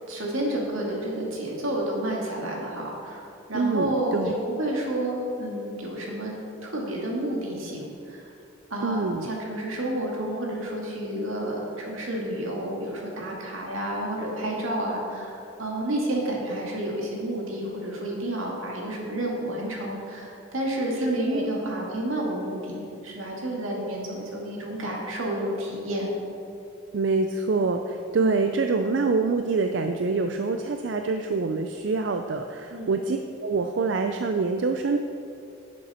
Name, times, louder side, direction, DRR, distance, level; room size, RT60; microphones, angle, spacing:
voice 1, 0.0-8.3 8.7-26.1 28.2-28.5 32.7-33.0, right 1 dB, 85° right, -2 dB, 2.1 m, -30 dB
voice 2, 3.5-4.4 8.8-9.3 21.0-21.5 26.9-35.0, right 4 dB, 60° right, 5 dB, 0.4 m, -26 dB
11.0 x 7.5 x 4.3 m, 2.6 s
head